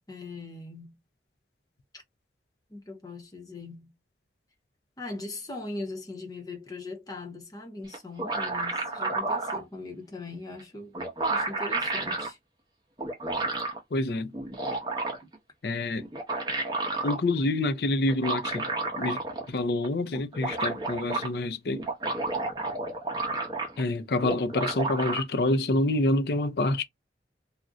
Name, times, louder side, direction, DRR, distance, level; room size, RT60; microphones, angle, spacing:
voice 1, 0.1-1.0 2.7-3.9 5.0-10.9 11.3-12.4, left 2 dB, 20° left, 0.7 m, -40 dB
sound 1, 7.9-9.6 10.6-10.7 10.9-12.3 13.0-13.8 14.3-15.4 16.0-17.2 18.1-19.5 19.8-19.9 20.1-21.3 21.7-23.9 24.2-25.2, right 3 dB, 25° right, 0.7 m, -31 dB
voice 2, 13.9-14.3 15.6-16.0 17.0-18.7 19.0-19.2 19.5-21.9 23.8-26.8, left 2 dB, 60° left, 0.5 m, -27 dB
2.4 x 2.1 x 3.7 m
head